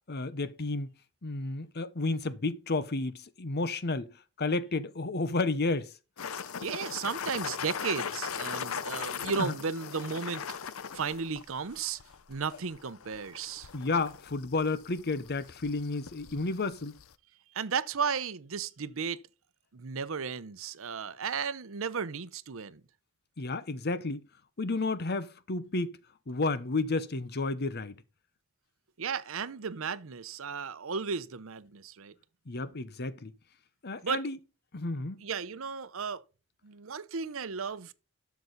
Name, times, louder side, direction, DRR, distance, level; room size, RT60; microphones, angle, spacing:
voice 1, 0.1-0.9 1.2-4.1 4.4-5.9 13.7-16.9 23.4-24.2 24.6-26.0 26.3-27.9 32.5-33.3 33.8-34.4 34.7-35.2, left 3 dB, 50° left, 0.9 m, -31 dB
sound 1, 6.2-17.1, left 7 dB, 75° left, 0.7 m, -40 dB
voice 2, 6.6-10.4 10.9-12.0 12.3-13.7 17.5-19.2 19.7-22.8 29.0-32.1 34.0-34.3 35.2-36.2 36.6-37.9, right 5 dB, 70° right, 0.7 m, -34 dB
12.5 x 7.0 x 4.0 m
head